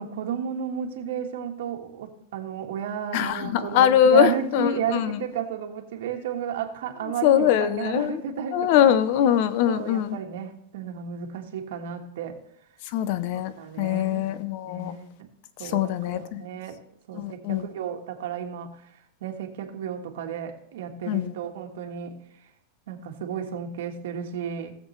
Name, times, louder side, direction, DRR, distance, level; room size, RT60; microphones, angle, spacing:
voice 1, 0.0-9.0 9.7-12.4 13.6-14.3 14.6-15.3 15.6-16.8 17.1-18.8 19.2-22.2 22.9-24.7, right 8 dB, 75° right, 1.5 m, -33 dB
voice 2, 3.1-5.2 7.2-8.2 8.5-10.2 12.9-13.5 13.8-14.9 15.6-16.5 17.1-17.6 21.1-21.3, left 10 dB, 50° left, 0.7 m, -22 dB
17.0 x 7.5 x 3.2 m
supercardioid pair, 165°, 0 cm